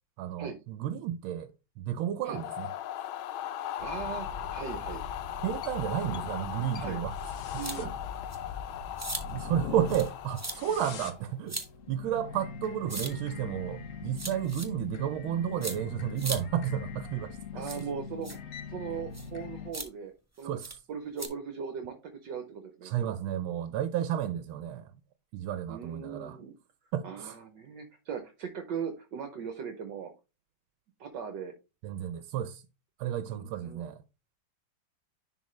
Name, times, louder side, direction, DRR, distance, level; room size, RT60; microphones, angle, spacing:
voice 1, 0.2-1.5 1.8-2.7 5.4-7.1 7.5-7.9 8.4-8.6 9.3-11.6 11.9-17.8 20.4-20.8 22.8-24.9 25.3-26.4 26.9-27.3 31.8-32.6 33.0-34.0, right 10 dB, 85° right, 1.4 m, -32 dB
sound 1, 2.2-11.3, left 11 dB, 85° left, 1.5 m, -39 dB
sound 2, 3.8-19.7, left 5 dB, 65° left, 0.8 m, -42 dB
voice 2, 3.8-5.0 6.1-6.3 6.7-7.0 7.6-7.9 17.5-18.4 18.7-20.6 20.9-23.1 25.7-26.5 27.0-30.1 31.0-31.5 33.3-33.8, right 6 dB, 65° right, 1.4 m, -39 dB
sound 3, 7.6-7.8 8.3-8.4 9.0-9.2 9.9-10.1 10.3-10.5 11.5-11.7 12.9-13.1 14.1-14.7 15.6-15.7 16.2-16.4 17.6-17.8 18.2-18.4 19.1-19.3 19.7-19.9 20.6-20.7 21.2-21.3, right 2 dB, 25° right, 0.3 m, -37 dB
10.5 x 3.7 x 3.1 m
omnidirectional pair, 2.2 m